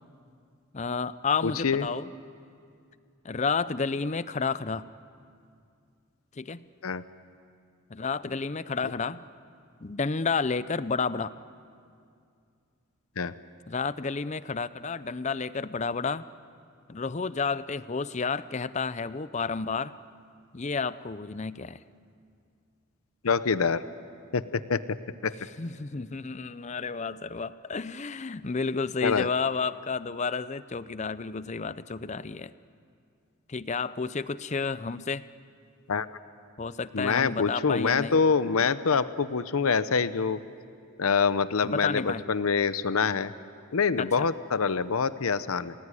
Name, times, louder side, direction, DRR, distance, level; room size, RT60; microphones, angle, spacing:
voice 1, 0.7-2.1 3.2-4.9 6.4-6.7 7.9-9.2 9.8-11.3 13.7-16.3 16.9-19.9 20.5-21.8 25.6-32.5 33.5-35.2 36.6-38.2 38.5-38.6 41.6-42.2 44.0-44.3, left 4 dB, 35° left, 15 dB, 0.6 m, -31 dB
voice 2, 1.4-1.8 6.8-7.0 13.2-13.3 23.2-23.8 24.3-25.0 25.2-25.4 29.0-29.3 35.9-36.1 36.9-40.4 41.0-43.3 43.7-45.7, left 5 dB, 90° left, 14 dB, 0.7 m, -25 dB
29.0 x 19.0 x 9.8 m, 2.4 s
head